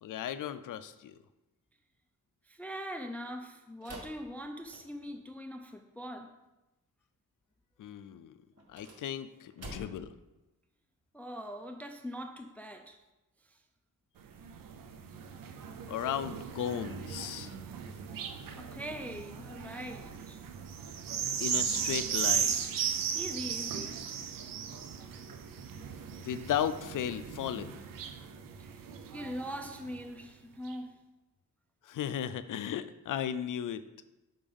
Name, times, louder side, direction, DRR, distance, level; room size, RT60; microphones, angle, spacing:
voice 1, 0.0-1.2 7.8-8.3 8.7-10.1 15.9-17.5 21.4-22.6 26.2-27.7 31.8-33.8, left 9 dB, 65° left, 13 dB, 0.5 m, -35 dB
voice 2, 2.5-6.4 11.1-13.0 13.5-13.6 18.5-20.4 23.1-24.0 28.6-28.9 29.1-31.0, equal, 5° left, 5 dB, 0.4 m, -42 dB
sound 1, 3.8-5.2 8.5-10.2, right 1 dB, 45° right, 1.6 m, -48 dB
sound 2, 14.2-30.0 30.7-30.8, right 7 dB, 70° right, 0.6 m, -37 dB
5.6 x 3.4 x 5.3 m, 1.0 s
cardioid pair, 70°, 34 cm